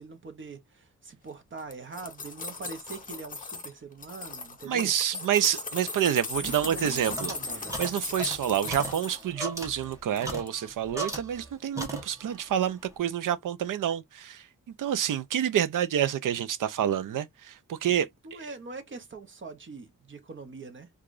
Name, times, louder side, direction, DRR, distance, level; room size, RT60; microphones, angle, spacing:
voice 1, 0.0-4.9 6.4-7.0 7.3-7.8 17.9-20.9, right 4 dB, 40° right, 0.9 m, -43 dB
sound 1, 1.6-3.7 4.0-9.2 9.7-10.2 10.5-10.6, left 4 dB, 25° left, 0.7 m, -37 dB
voice 2, 4.7-7.3 7.8-14.4 14.8-18.4, right 10 dB, 80° right, 0.6 m, -28 dB
sound 2, 6.3-11.5 11.8-12.4, right 1 dB, 10° right, 1.0 m, -38 dB
4.8 x 2.4 x 2.5 m
wide cardioid pair, 160°, 32 cm